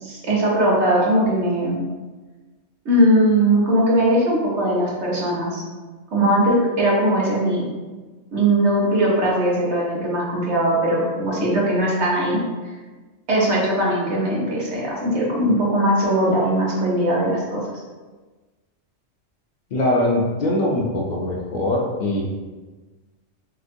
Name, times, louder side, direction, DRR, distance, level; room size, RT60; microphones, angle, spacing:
voice 1, 0.0-1.8 2.8-5.6 6.1-7.6 8.3-12.4 13.3-17.6, right 1 dB, 65° right, -4 dB, 1.1 m, -20 dB
voice 2, 19.7-22.2, left 1 dB, 70° left, -2 dB, 0.4 m, -22 dB
3.4 x 2.8 x 2.5 m, 1.3 s
omnidirectional pair, 1.3 m